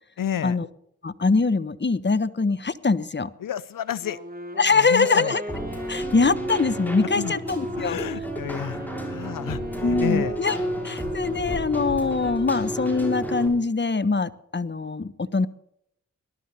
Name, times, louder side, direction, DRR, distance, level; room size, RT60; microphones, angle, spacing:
voice 1, 0.2-0.6 3.4-4.2 4.7-5.3 6.0-6.1 7.1-7.3 7.8-8.8 9.1-10.4, left 9 dB, 90° left, 18 dB, 0.7 m, -30 dB
voice 2, 1.0-3.3 4.6-5.4 5.9-8.0 9.8-10.6 10.8-15.5, left 4 dB, 35° left, 14 dB, 1.2 m, -23 dB
Wind instrument woodwind instrument, 4.0-11.9, right 1 dB, 30° right, 4.5 m, -37 dB
Keyboard (musical), 5.5-13.5, right 1 dB, 5° left, 6.1 m, -31 dB
21.0 x 12.5 x 4.3 m, 0.71 s
cardioid pair, 40°, 32 cm